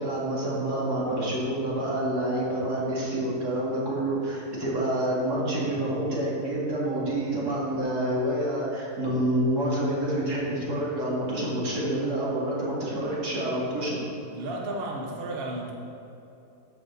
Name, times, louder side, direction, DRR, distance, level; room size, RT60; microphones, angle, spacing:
voice 1, 0.0-14.0, right 1 dB, 75° right, -6 dB, 2.7 m, -28 dB
voice 2, 14.4-15.7, right 1 dB, 45° right, -1 dB, 1.0 m, -33 dB
13.5 x 5.0 x 4.1 m, 2.8 s
omnidirectional pair, 1.7 m